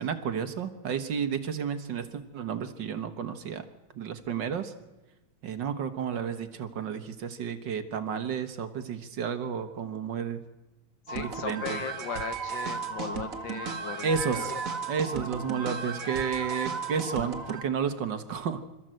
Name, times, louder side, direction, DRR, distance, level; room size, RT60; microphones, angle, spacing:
voice 1, 0.0-3.6 4.0-4.7 5.4-10.4 11.2-11.8 14.0-14.5 14.9-18.6, right 7 dB, 60° right, 9 dB, 1.8 m, -32 dB
voice 2, 11.1-14.6, left 7 dB, 65° left, 10 dB, 1.7 m, -38 dB
sound 1, 11.1-17.6, right 5 dB, 45° right, 1.8 m, -34 dB
27.0 x 13.5 x 7.7 m, 1.0 s
omnidirectional pair, 2.3 m